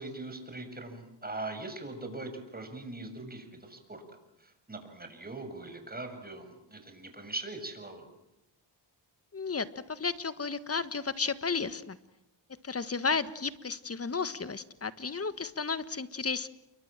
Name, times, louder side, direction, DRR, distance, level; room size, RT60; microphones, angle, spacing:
voice 1, 0.0-4.0 4.4-8.1, right 2 dB, 20° right, 6 dB, 7.3 m, -41 dB
voice 2, 9.3-12.0 12.6-16.5, left 5 dB, 30° left, 13 dB, 1.6 m, -33 dB
29.0 x 23.5 x 7.6 m, 0.88 s
cardioid pair, 75°, 46 cm